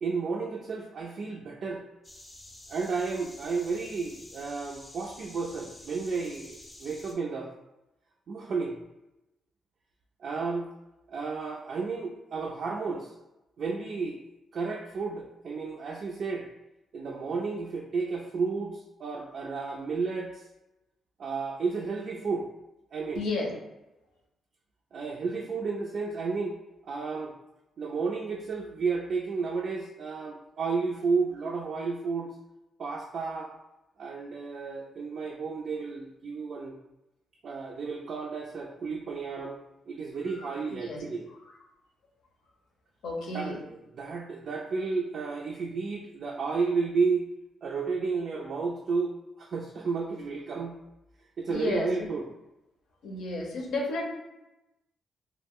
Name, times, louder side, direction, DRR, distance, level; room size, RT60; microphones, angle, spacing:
voice 1, 0.0-1.8 2.7-7.5 8.3-8.8 10.2-10.7 11.1-13.1 13.6-14.2 14.5-16.5 16.9-20.5 21.2-22.5 22.9-23.2 24.9-26.6 26.8-27.4 27.8-32.4 32.8-33.5 34.0-36.7 37.4-41.3 43.3-43.5 44.0-47.3 47.6-50.7 51.4-52.3, right 4 dB, 60° right, 0 dB, 0.3 m, -32 dB
sound 1, 2.0-7.1, left 1 dB, 25° left, 0.5 m, -49 dB
voice 2, 23.1-23.5 40.2-41.5 43.0-43.6 51.5-52.1 53.0-54.0, left 2 dB, 85° left, -1 dB, 0.6 m, -33 dB
2.2 x 2.0 x 3.5 m, 0.97 s
cardioid pair, 85°, 0 cm